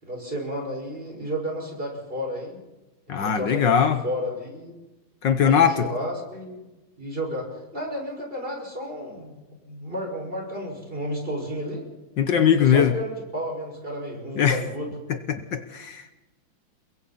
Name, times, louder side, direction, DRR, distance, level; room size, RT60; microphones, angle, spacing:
voice 1, 0.0-2.6 3.1-4.8 5.4-6.7 7.0-11.8 12.5-14.9, equal, 25° right, 0 dB, 6.0 m, -32 dB
voice 2, 3.1-4.0 5.2-5.9 12.2-12.9 14.4-14.6 15.3-16.1, left 8 dB, 70° left, 9 dB, 1.8 m, -20 dB
29.0 x 22.5 x 4.3 m, 1.1 s
omnidirectional pair, 2.1 m